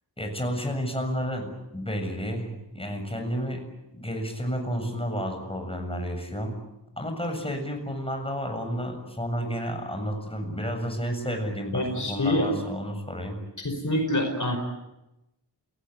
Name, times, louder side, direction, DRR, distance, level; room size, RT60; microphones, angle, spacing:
voice 1, 0.2-3.6 3.9-6.5 7.0-13.4, equal, 15° left, 4 dB, 7.3 m, -31 dB
voice 2, 11.7-12.5 13.6-14.6, left 1 dB, 45° left, 3 dB, 5.3 m, -26 dB
28.0 x 18.5 x 9.7 m, 0.94 s
wide cardioid pair, 55°, 41 cm